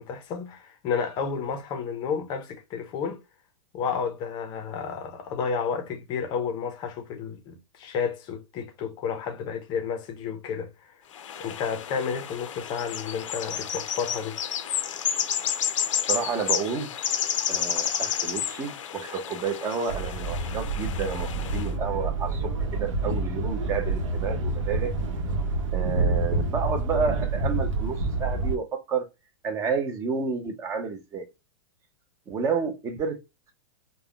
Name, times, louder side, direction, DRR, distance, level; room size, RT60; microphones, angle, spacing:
voice 1, 0.0-3.2 3.7-11.0 11.4-14.4, left 6 dB, 25° left, 0.5 m, -31 dB
sound 1, 11.1-21.7, left 9 dB, 85° left, 0.5 m, -31 dB
voice 2, 16.1-16.9 17.5-24.9 25.7-29.1 29.4-31.3 32.3-33.2, right 5 dB, 20° right, 0.6 m, -30 dB
sound 2, 19.9-28.6, right 3 dB, 80° right, 0.9 m, -28 dB
3.4 x 2.1 x 2.3 m
hypercardioid pair, 150°, 16 cm